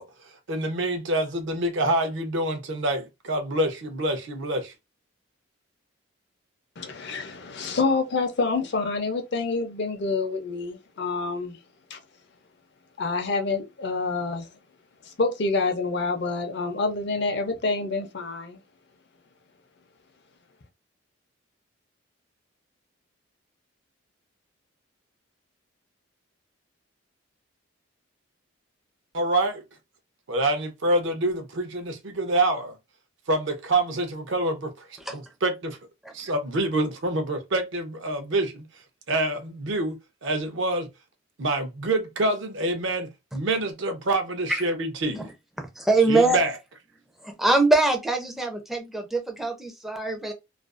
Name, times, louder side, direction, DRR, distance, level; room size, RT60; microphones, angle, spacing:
voice 1, 0.0-4.7 29.1-29.6 30.3-32.8 33.3-35.8 36.1-40.9 41.4-45.2 46.1-46.6, right 2 dB, 60° right, 0.6 m, -27 dB
voice 2, 6.8-11.6 11.9-12.0 13.0-14.5 15.0-18.6, left 3 dB, 55° left, 0.5 m, -27 dB
voice 3, 45.6-46.4 47.2-50.3, right 2 dB, ahead, 0.4 m, -23 dB
2.4 x 2.3 x 2.4 m
head